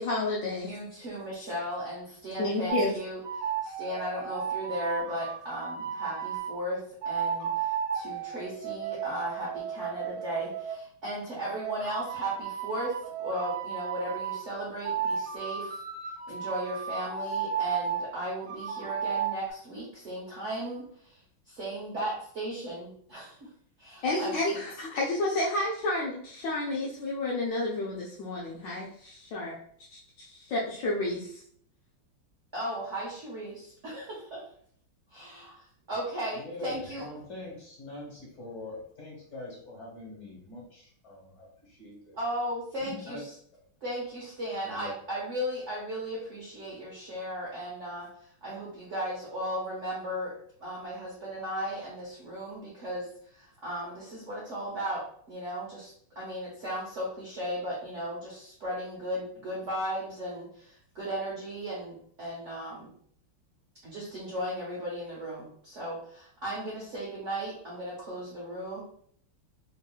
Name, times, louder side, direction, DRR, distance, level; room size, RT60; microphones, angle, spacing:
voice 1, 0.0-0.7 2.4-2.9 24.0-29.6 29.9-31.4, left 2 dB, 75° left, -4 dB, 1.1 m, -30 dB
voice 2, 0.6-3.2 3.6-15.8 16.3-21.2 21.5-23.5 23.8-24.3 32.5-34.5 35.1-37.1 42.1-43.3 43.8-62.9 63.8-68.8, right 1 dB, 60° right, -5 dB, 0.7 m, -36 dB
sound 1, 2.7-2.9 3.2-6.5 7.0-10.8 11.4-14.4 14.8-18.1 18.5-19.5, right 7 dB, 80° right, 1.5 m, -34 dB
voice 3, 36.3-42.2 42.8-43.2 44.6-44.9, left 2 dB, 40° left, -5 dB, 1.5 m, -43 dB
3.6 x 2.8 x 2.3 m, 0.62 s
omnidirectional pair, 2.3 m